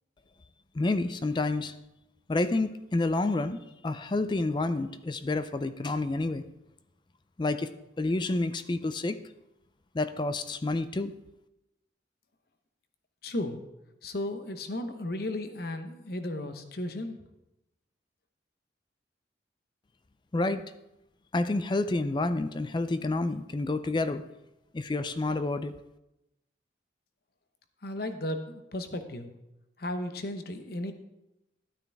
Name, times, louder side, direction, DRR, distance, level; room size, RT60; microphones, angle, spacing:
voice 1, 0.7-1.8 2.3-6.4 7.4-7.7 8.0-9.2 9.9-11.1 20.3-20.6 21.3-24.2 24.7-25.7, left 2 dB, 25° left, 12 dB, 0.4 m, -29 dB
voice 2, 13.2-13.6 14.0-17.2 27.8-29.3 29.8-30.9, left 1 dB, 55° left, 8 dB, 0.9 m, -34 dB
13.0 x 8.9 x 3.5 m, 0.93 s
head